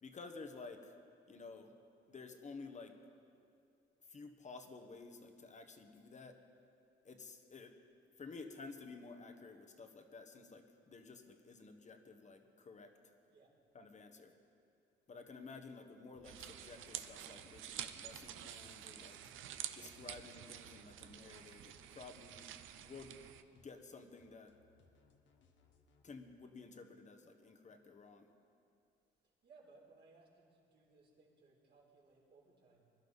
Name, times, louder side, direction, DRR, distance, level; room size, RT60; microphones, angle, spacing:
voice 1, 0.0-1.0 1.3-1.7 2.1-3.0 4.1-6.4 7.0-7.8 8.2-12.9 13.7-14.3 15.1-19.2 19.7-23.2 23.5-24.5 26.0-28.3, left 4 dB, 35° left, 5 dB, 1.3 m, -53 dB
voice 2, 13.3-13.6 29.4-32.9, right 3 dB, 60° right, -4 dB, 3.7 m, -65 dB
sound 1, 16.1-26.0, left 4 dB, 70° left, 1.3 m, -70 dB
sound 2, 16.2-23.4, right 11 dB, 85° right, 0.6 m, -49 dB
21.5 x 11.5 x 4.1 m, 2.5 s
cardioid pair, 90°, 20 cm